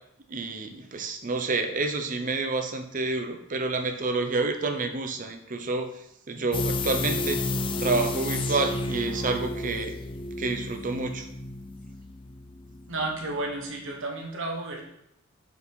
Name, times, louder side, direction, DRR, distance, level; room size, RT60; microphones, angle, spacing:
voice 1, 0.3-5.9 6.3-7.4 7.8-9.9 10.4-11.3, right 3 dB, 35° right, 6 dB, 0.6 m, -29 dB
White wave, 6.5-13.3 13.6-13.7, left 2 dB, 25° left, 0.3 m, -31 dB
voice 2, 12.9-14.8, right 2 dB, 60° right, 0 dB, 1.3 m, -32 dB
4.7 x 4.0 x 5.2 m, 0.79 s
head